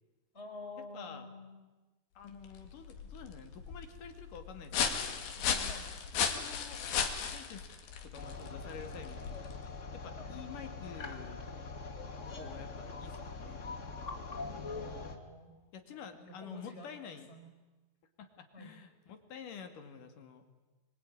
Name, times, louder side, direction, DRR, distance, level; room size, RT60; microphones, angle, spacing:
voice 1, 0.3-1.6 5.6-5.9 10.2-10.4 14.6-15.6 15.8-17.5 18.5-18.7, left 2 dB, 15° left, 2 dB, 4.7 m, -49 dB
voice 2, 0.9-1.3 2.2-5.8 6.1-6.8 7.3-7.7 8.0-9.4 9.9-11.4 12.2-13.6 15.7-17.3 18.2-20.6, left 6 dB, 65° left, 7 dB, 3.7 m, -49 dB
sound 1, 2.3-9.7, left 7 dB, 90° left, 4.0 m, -36 dB
sound 2, 8.2-15.2, left 3 dB, 35° left, 1.1 m, -43 dB
25.0 x 23.5 x 9.9 m, 1.2 s
omnidirectional pair, 4.1 m